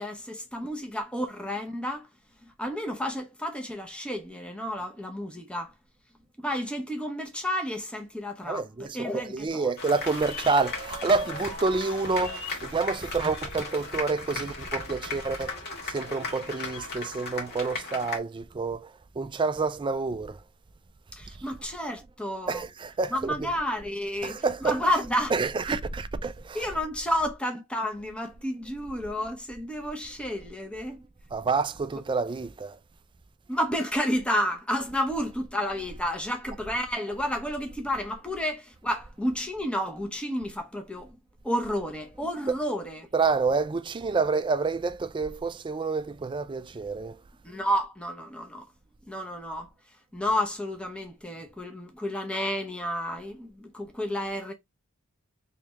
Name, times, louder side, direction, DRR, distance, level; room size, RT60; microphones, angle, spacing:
voice 1, 0.0-2.1 2.6-5.7 6.4-9.7 21.1-22.6 23.1-25.3 25.7-25.8 26.5-31.0 33.5-41.2 41.4-43.1 47.4-48.7 49.1-49.7 50.1-54.5, equal, 5° left, 0.8 m, -31 dB
voice 2, 8.4-20.4 21.3-21.4 22.5-23.6 24.2-24.9 25.3-26.8 28.9-29.0 31.3-32.8 42.5-42.6 43.1-47.2, right 4 dB, 20° right, 0.3 m, -28 dB
sound 1, 9.8-18.2, left 3 dB, 50° left, 1.6 m, -36 dB
3.3 x 3.1 x 3.4 m
head